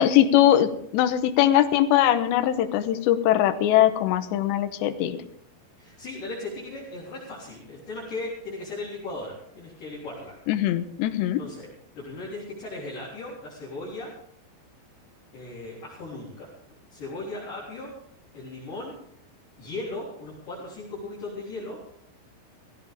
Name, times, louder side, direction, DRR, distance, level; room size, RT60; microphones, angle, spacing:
voice 1, 0.0-5.2 10.5-11.4, left 12 dB, 80° left, 10 dB, 3.0 m, -21 dB
voice 2, 5.8-10.4 11.4-11.7 11.9-14.1 15.3-16.5 16.9-17.9 18.3-19.0 19.6-21.8, left 2 dB, 45° left, -7 dB, 4.9 m, -37 dB
17.5 x 16.0 x 3.6 m, 0.70 s
omnidirectional pair, 5.4 m